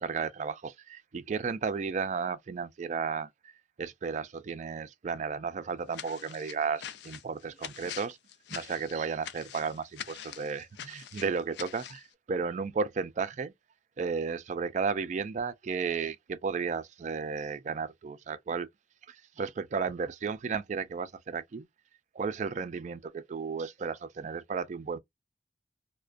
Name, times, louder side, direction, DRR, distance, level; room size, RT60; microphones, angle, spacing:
voice 1, 0.0-3.3 3.8-8.2 8.5-13.5 14.0-18.7 19.1-21.7 22.1-25.0, right 5 dB, 40° right, 0.3 m, -33 dB
sound 1, 5.9-12.1, left 10 dB, 65° left, 0.3 m, -44 dB
2.4 x 2.1 x 2.4 m
head